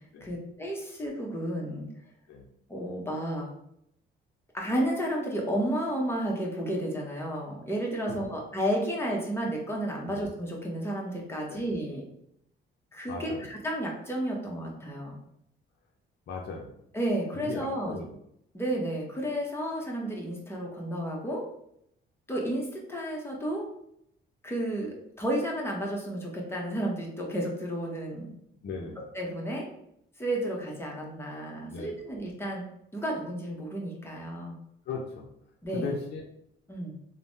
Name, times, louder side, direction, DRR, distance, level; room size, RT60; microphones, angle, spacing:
voice 1, 0.2-1.9 2.7-3.5 4.5-12.0 12.9-15.2 16.9-17.9 18.5-21.4 22.3-23.6 24.4-28.3 29.1-29.7 30.2-32.6 32.9-34.6 35.6-35.9 36.7-36.9, right 1 dB, 10° left, -2 dB, 0.8 m, -32 dB
voice 2, 8.1-8.4 10.1-10.2 11.5-11.6 13.1-13.5 16.3-16.7 17.3-18.1 28.6-29.0 31.7-32.0 34.9-35.3 35.7-36.2, left 4 dB, 60° left, 0 dB, 0.5 m, -37 dB
3.2 x 2.1 x 2.7 m, 0.75 s
cardioid pair, 90°, 20 cm